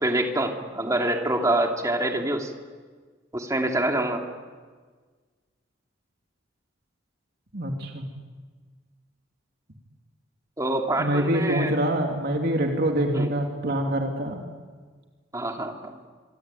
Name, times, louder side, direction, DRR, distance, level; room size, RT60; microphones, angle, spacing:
voice 1, 0.0-2.5 3.3-4.2 10.6-11.7 13.1-13.3 15.3-16.0, right 1 dB, 15° right, 2 dB, 2.9 m, -26 dB
voice 2, 7.5-8.1 11.0-14.5, right 1 dB, 55° right, 2 dB, 2.7 m, -25 dB
25.0 x 25.0 x 9.1 m, 1.5 s
head